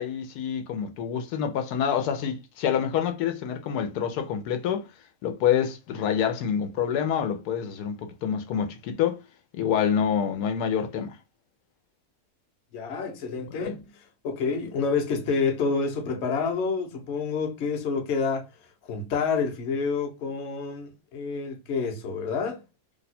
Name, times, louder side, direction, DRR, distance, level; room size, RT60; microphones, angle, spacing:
voice 1, 0.0-4.9 5.2-9.2 9.5-11.2 13.5-13.8, left 8 dB, 90° left, 1.2 m, -27 dB
voice 2, 12.7-18.5 18.8-22.6, left 5 dB, 55° left, 0.9 m, -28 dB
2.8 x 2.2 x 4.1 m
omnidirectional pair, 1.6 m